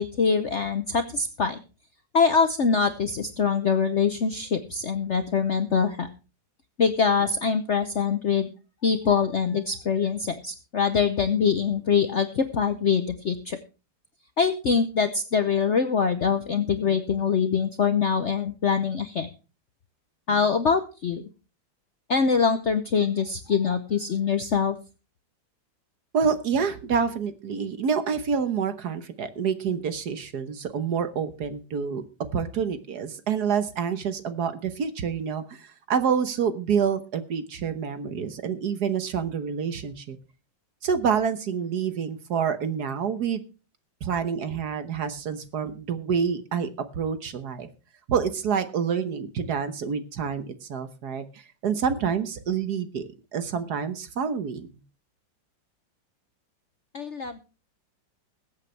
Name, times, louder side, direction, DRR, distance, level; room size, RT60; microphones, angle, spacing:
voice 1, 0.0-1.6 2.1-6.1 6.8-8.5 8.8-13.6 14.4-19.3 20.3-21.3 22.1-24.7 56.9-57.4, left 6 dB, 55° left, 9 dB, 0.8 m, -24 dB
voice 2, 26.1-32.0 32.3-40.2 40.8-43.4 44.0-46.7 46.9-47.7 48.1-51.3 51.6-54.7, right 6 dB, 60° right, 10 dB, 1.5 m, -27 dB
21.5 x 8.2 x 3.3 m, 0.33 s
omnidirectional pair, 2.1 m